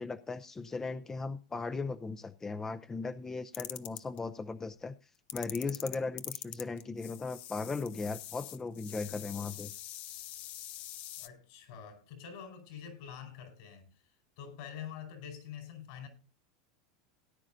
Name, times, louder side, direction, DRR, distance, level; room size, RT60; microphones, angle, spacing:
voice 1, 0.0-4.9 5.3-9.7, left 4 dB, 15° left, 0.6 m, -37 dB
sound 1, 3.5-4.2 5.3-11.3, left 13 dB, 50° left, 0.7 m, -44 dB
voice 2, 11.2-13.9 14.4-16.1, left 8 dB, 70° left, 4.9 m, -46 dB
18.0 x 9.8 x 2.6 m
hypercardioid pair, 100°, 3 cm